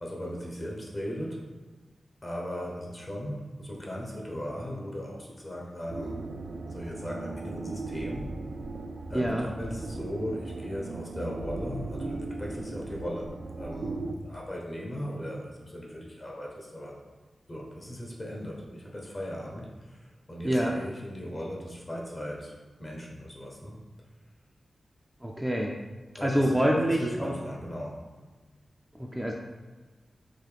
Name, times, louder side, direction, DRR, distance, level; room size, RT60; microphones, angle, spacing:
voice 1, 0.0-1.5 2.2-6.2 6.6-8.4 9.1-17.0 17.5-23.8 26.1-28.1, equal, 35° left, -2 dB, 0.9 m, -38 dB
sound 1, 5.9-14.1, right 3 dB, 75° right, 0.3 m, -38 dB
voice 2, 9.1-9.5 20.4-20.8 25.2-25.7 26.2-27.3 29.0-29.3, equal, 5° right, -1 dB, 0.4 m, -26 dB
3.9 x 2.7 x 3.4 m, 1.4 s
wide cardioid pair, 80°, 0 cm